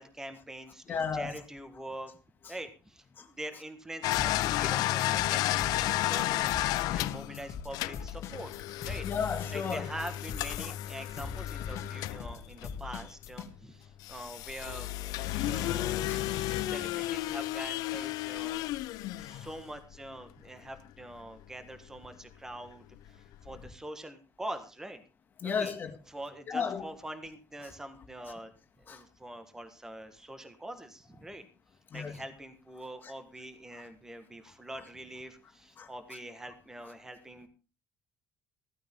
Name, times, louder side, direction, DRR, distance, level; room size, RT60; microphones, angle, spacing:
voice 1, 0.0-2.1 2.5-5.0 5.3-8.5 8.8-9.1 9.5-18.6 19.2-25.0 25.4-25.7 26.1-28.5 28.8-31.4 31.9-37.5, right 1 dB, 10° right, 1.6 m, -44 dB
voice 2, 0.9-1.3 3.2-3.3 4.7-4.8 9.0-9.9 15.4-15.5 16.1-16.2 25.4-25.9 26.5-26.9 28.9-29.0 31.9-32.1 35.8-35.9, left 6 dB, 30° left, 2.3 m, -33 dB
sound 1, 4.0-13.4 14.0-20.0 21.4-21.5 21.9-22.0 23.1-23.2 23.3-23.5, left 15 dB, 75° left, 0.6 m, -33 dB
sound 2, 4.1-5.3 5.6-13.5, left 7 dB, 50° left, 1.9 m, -41 dB
15.5 x 14.0 x 3.7 m
cardioid pair, 170°, 7 cm